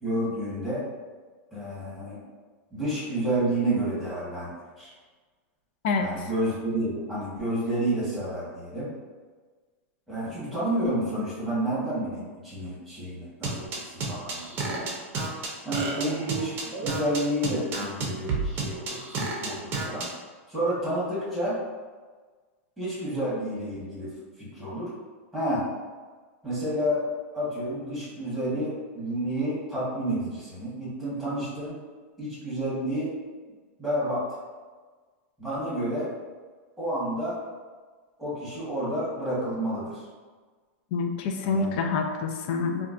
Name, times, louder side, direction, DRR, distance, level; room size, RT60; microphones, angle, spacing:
voice 1, 0.0-0.8 1.5-2.2 2.7-4.9 6.0-8.9 10.1-14.9 15.6-20.1 20.5-21.6 22.8-24.9 25.3-25.7 26.4-27.0 27.3-31.8 32.2-33.1 33.8-34.2 35.4-36.1 36.8-37.4 38.2-40.0 41.4-41.8, right 1 dB, ahead, -10 dB, 1.1 m, -30 dB
voice 2, 5.8-6.3 40.9-42.9, left 4 dB, 50° left, 5 dB, 0.4 m, -27 dB
sound 1, 13.4-20.0, right 4 dB, 30° right, 0.6 m, -30 dB
3.8 x 2.2 x 2.4 m, 1.4 s
supercardioid pair, 150°, 7 cm